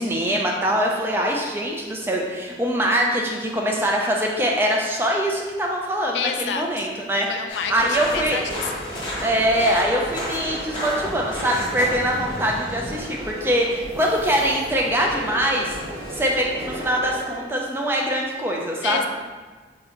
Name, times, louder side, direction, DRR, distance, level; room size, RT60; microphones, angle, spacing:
voice 1, 0.0-7.3 7.7-8.4 9.2-15.8 16.1-19.1, equal, 15° right, -1 dB, 0.4 m, -23 dB
voice 2, 6.1-6.9 7.3-8.9 18.8-19.1, left 6 dB, 85° left, 6 dB, 0.3 m, -29 dB
sound 1, 7.5-13.0, equal, 25° left, 0.8 m, -33 dB
sound 2, 7.7-17.4, equal, 85° right, 1.4 m, -35 dB
3.5 x 2.8 x 3.5 m, 1.4 s
head